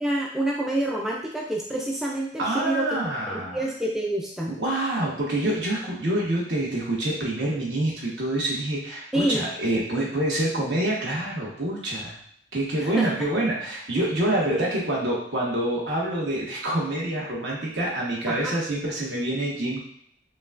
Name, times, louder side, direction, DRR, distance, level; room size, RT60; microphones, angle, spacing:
voice 1, 0.0-3.0 3.3-4.5 9.1-9.4 12.8-13.1 14.5-14.6 18.3-18.5, right 1 dB, ahead, -3 dB, 0.3 m, -27 dB
voice 2, 2.4-3.6 4.5-12.2 12.5-19.8, right 1 dB, 65° right, -4 dB, 1.2 m, -26 dB
5.2 x 2.2 x 2.5 m, 0.66 s
head